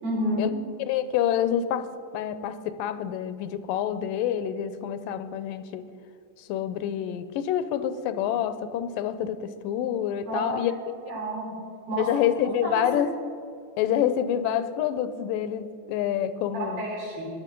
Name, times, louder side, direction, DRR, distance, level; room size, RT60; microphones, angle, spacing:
voice 1, 0.0-0.5 10.2-10.6 11.1-11.6 11.9-12.1 12.6-12.9 16.5-17.3, equal, 80° right, -4 dB, 5.9 m, -30 dB
voice 2, 0.9-5.9 6.4-10.9 12.0-13.1 13.8-16.9, left 10 dB, 80° left, 12 dB, 2.3 m, -27 dB
17.5 x 11.0 x 5.3 m, 2.5 s
omnidirectional pair, 3.9 m